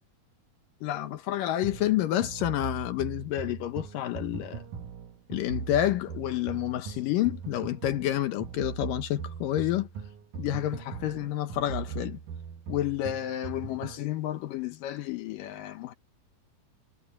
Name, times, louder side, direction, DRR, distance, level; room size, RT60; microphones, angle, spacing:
voice 1, 0.8-4.6 5.3-9.9 10.4-12.2 12.7-15.9, left 13 dB, 70° left, 2.2 m, -29 dB
sound 1, 1.6-14.1, right 7 dB, 65° right, 2.1 m, -40 dB
omnidirectional pair, 4.9 m